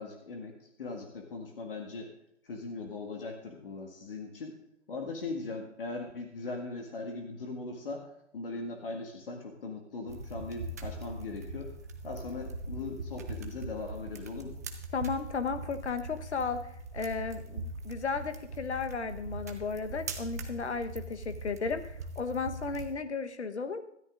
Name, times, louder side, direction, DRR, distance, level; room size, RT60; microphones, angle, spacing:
voice 1, 0.0-2.1 2.4-4.6 4.9-11.7 12.0-14.6, left 3 dB, 50° left, 2 dB, 1.9 m, -39 dB
sound 1, 10.1-22.9, right 2 dB, 15° right, 0.4 m, -41 dB
voice 2, 14.9-23.8, left 5 dB, 70° left, 9 dB, 1.2 m, -34 dB
18.5 x 13.0 x 2.5 m, 0.78 s
figure-of-eight pair, 140°, 35 cm